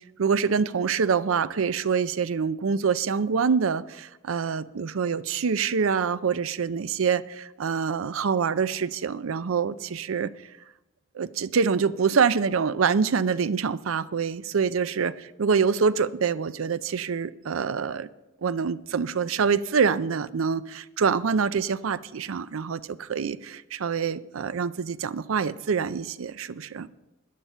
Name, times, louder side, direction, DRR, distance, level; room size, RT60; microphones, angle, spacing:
voice 1, 0.2-10.3 11.1-15.1 15.4-18.1 18.4-26.9, right 6 dB, 85° right, 0.5 m, -25 dB
13.0 x 10.0 x 5.5 m
head